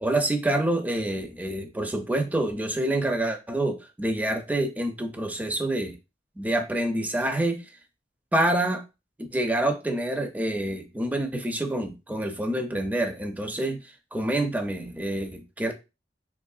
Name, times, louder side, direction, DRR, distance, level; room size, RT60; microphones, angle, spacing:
voice 1, 0.0-5.9 6.4-7.6 8.3-8.8 9.2-13.8 14.1-15.7, right 1 dB, 10° right, 0.4 m, -27 dB
3.7 x 2.8 x 2.3 m
head